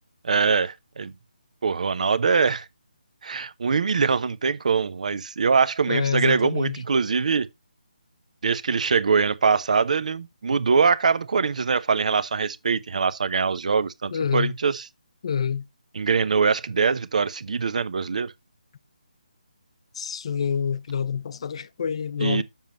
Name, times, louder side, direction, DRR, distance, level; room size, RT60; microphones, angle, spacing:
voice 1, 0.2-1.1 1.6-2.7 3.2-7.5 8.4-14.9 15.9-18.3 22.2-22.4, right 5 dB, 55° right, 0.7 m, -23 dB
voice 2, 5.9-6.8 14.1-14.5 15.2-15.6 20.0-22.4, left 7 dB, 40° left, 0.5 m, -27 dB
7.2 x 7.1 x 3.0 m
figure-of-eight pair, 160°, 5 cm